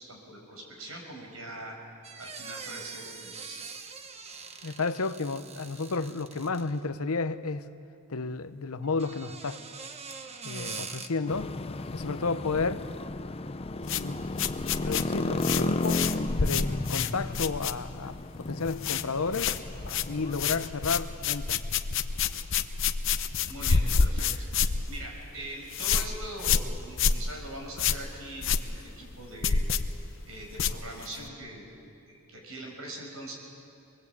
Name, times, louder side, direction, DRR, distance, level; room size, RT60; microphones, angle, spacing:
voice 1, 0.0-1.8 2.2-3.6 23.5-29.6 30.3-31.7 32.1-33.3, right 1 dB, 80° right, 5.8 m, -42 dB
sound 1, 2.0-6.9 8.8-11.1, right 5 dB, 30° right, 1.0 m, -43 dB
voice 2, 4.6-7.7 8.1-9.6 10.4-11.5 11.9-12.9 13.9-14.2 14.8-19.5 20.1-21.7, left 4 dB, 90° left, 0.9 m, -32 dB
sound 2, 11.3-20.7, left 2 dB, 25° left, 0.6 m, -33 dB
sound 3, 13.8-18.2 18.4-19.1 19.3-31.3, left 5 dB, 60° left, 0.8 m, -29 dB
24.0 x 21.0 x 8.4 m
head